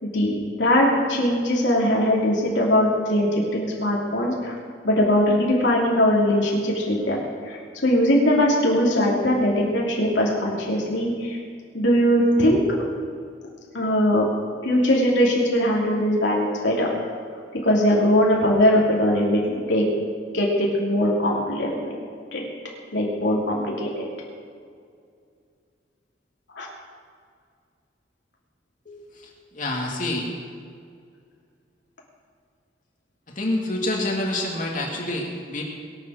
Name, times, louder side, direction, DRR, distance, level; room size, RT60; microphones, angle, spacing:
voice 1, 0.0-4.5 4.8-7.2 7.5-11.4 11.7-12.8 13.7-14.4 14.6-16.9 17.6-19.8 20.3-21.9 22.3-22.4 22.9-24.1 26.5-26.7, equal, 80° left, -3 dB, 3.0 m, -21 dB
voice 2, 28.9-30.3 33.3-35.6, left 1 dB, 45° left, -1 dB, 2.1 m, -28 dB
22.0 x 7.8 x 6.4 m, 2.2 s
head